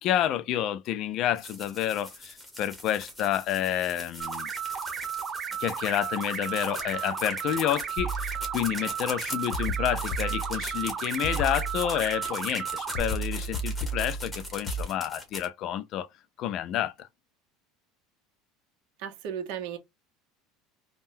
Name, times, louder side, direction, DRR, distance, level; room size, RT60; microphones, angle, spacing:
voice 1, 0.0-4.5 5.6-16.1 16.4-17.1, left 11 dB, 45° left, 0.3 m, -29 dB
sound 1, 1.4-15.5, left 1 dB, 5° left, 0.9 m, -41 dB
sound 2, 4.2-13.0, right 7 dB, 25° right, 0.4 m, -34 dB
sound 3, 8.0-8.9 9.5-10.9 11.2-12.3 13.0-14.8, right 2 dB, 60° left, 0.8 m, -33 dB
voice 2, 19.0-19.8, right 8 dB, 65° right, 0.9 m, -35 dB
3.5 x 2.2 x 2.5 m
cardioid pair, 150°, 0 cm